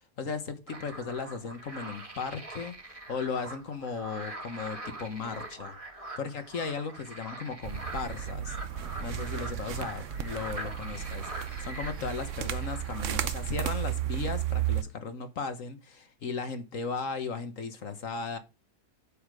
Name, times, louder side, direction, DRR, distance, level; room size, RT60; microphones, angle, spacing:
voice 1, 0.2-5.8 6.2-8.6 9.0-18.4, left 5 dB, 60° left, 1.5 m, -36 dB
sound 1, 0.7-13.0, right 1 dB, 20° right, 2.0 m, -43 dB
sound 2, 7.6-14.8, right 11 dB, 60° right, 1.1 m, -33 dB
8.4 x 7.2 x 4.8 m
omnidirectional pair, 1.7 m